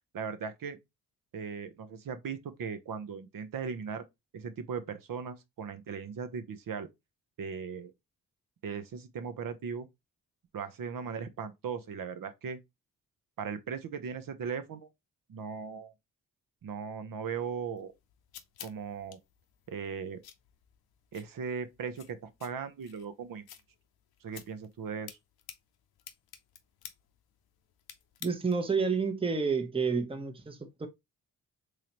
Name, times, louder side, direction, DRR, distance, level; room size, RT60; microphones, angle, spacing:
voice 1, 0.1-0.8 1.3-4.0 4.3-6.9 7.4-7.9 8.6-9.9 10.5-12.6 13.4-14.9 15.3-15.9 16.6-17.9 18.6-19.2 19.7-20.2 21.1-23.4 24.2-25.2, right 6 dB, 65° right, 0.8 m, -38 dB
sound 1, 17.8-28.8, left 10 dB, 90° left, 0.6 m, -53 dB
voice 2, 28.2-30.9, right 5 dB, 15° right, 0.8 m, -30 dB
3.8 x 3.2 x 2.9 m
cardioid pair, 60°, 36 cm